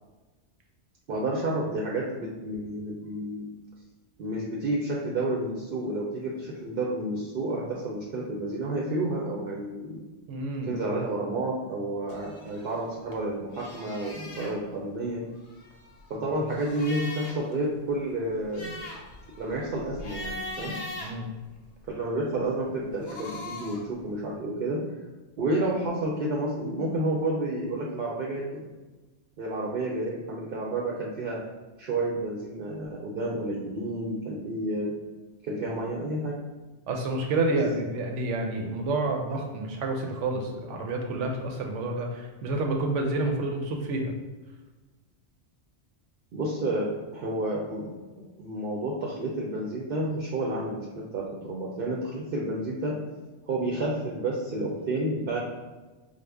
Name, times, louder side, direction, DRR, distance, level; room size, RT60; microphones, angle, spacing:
voice 1, 1.1-3.5 4.2-10.0 10.7-15.2 16.1-18.7 19.4-20.8 21.9-24.8 25.4-28.7 29.4-31.4 31.8-34.9 35.4-36.4 46.3-53.0 53.5-55.4, right 1 dB, 60° right, -2 dB, 0.7 m, -30 dB
voice 2, 10.3-10.8 21.0-21.3 36.9-44.1, right 2 dB, 80° right, 2 dB, 1.0 m, -29 dB
sound 1, 12.1-13.2 13.5-14.6 15.4-17.5 17.9-18.0 18.3-21.9 22.8-23.9, left 1 dB, 75° left, 0.9 m, -41 dB
4.9 x 2.0 x 3.4 m, 1.2 s
omnidirectional pair, 1.2 m